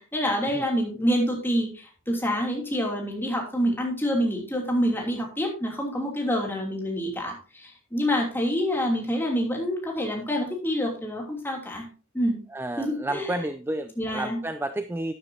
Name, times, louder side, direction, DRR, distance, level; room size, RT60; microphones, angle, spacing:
voice 1, 0.0-11.9 12.1-12.4 12.8-13.3 14.0-14.4, equal, 10° left, 0 dB, 3.0 m, -27 dB
voice 2, 12.5-15.1, right 1 dB, 10° right, 10 dB, 0.4 m, -31 dB
12.0 x 9.7 x 2.8 m, 0.35 s
head